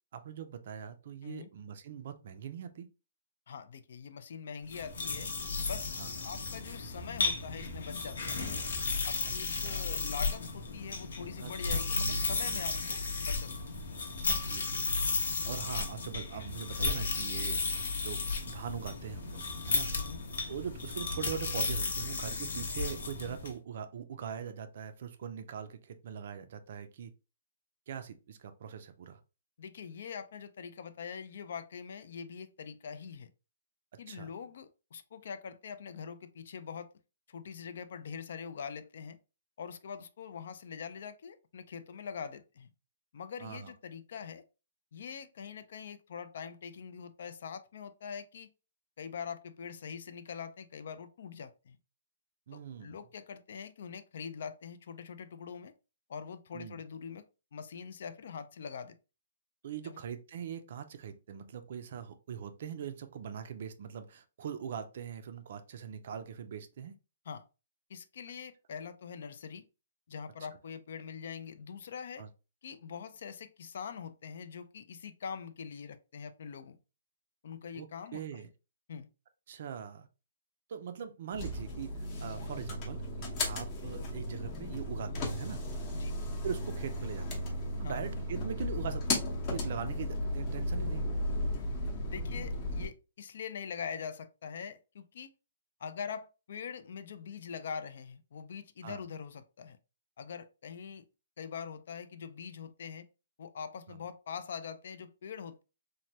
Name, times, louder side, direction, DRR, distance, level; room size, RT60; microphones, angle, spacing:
voice 1, 0.1-2.9 6.0-6.1 9.5-9.9 11.4-12.7 14.3-19.9 20.5-27.1 27.9-29.2 34.1-34.3 43.4-43.7 52.5-53.0 56.5-56.8 59.6-66.9 72.2-72.3 77.7-78.5 79.5-80.1 80.7-85.6 86.4-87.4 87.8-89.2 89.5-91.0 98.8-99.0 103.9-104.0, right 8 dB, 50° right, 0.4 m, -42 dB
voice 2, 3.5-5.3 5.6-5.9 6.2-8.5 9.0-13.5 13.8-13.9 14.1-14.3 19.9-20.2 29.6-33.3 34.0-36.9 37.3-39.2 39.6-42.7 43.1-44.4 44.9-48.5 49.0-51.8 52.5-55.7 56.1-57.2 57.5-59.0 59.8-60.0 67.3-67.4 67.9-69.6 70.1-72.3 72.6-76.8 77.4-78.4 78.9-79.1 85.9-86.2 87.8-88.1 92.1-95.3 95.8-99.8 100.2-101.0 101.4-103.1 103.4-105.6, left 6 dB, 55° left, 0.3 m, -43 dB
sound 1, 4.7-23.5, left 3 dB, 75° left, 0.7 m, -34 dB
sound 2, 81.3-92.9, left 1 dB, 25° left, 0.7 m, -35 dB
3.1 x 2.1 x 2.7 m
hypercardioid pair, 165°, 0 cm